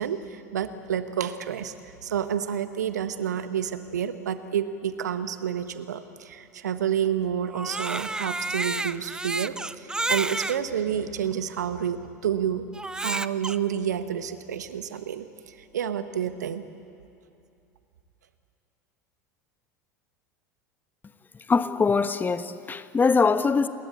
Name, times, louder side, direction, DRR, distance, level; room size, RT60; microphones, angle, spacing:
voice 1, 0.0-12.7 12.9-15.3 15.7-16.6, right 9 dB, 75° right, 1.4 m, -29 dB
Crying sobbing, 7.5-10.6 11.3-11.4 12.7-13.6, right 2 dB, 10° right, 0.6 m, -30 dB
voice 2, 21.5-23.7, left 4 dB, 20° left, 1.2 m, -22 dB
29.0 x 21.0 x 8.6 m
figure-of-eight pair, 75°, 9 cm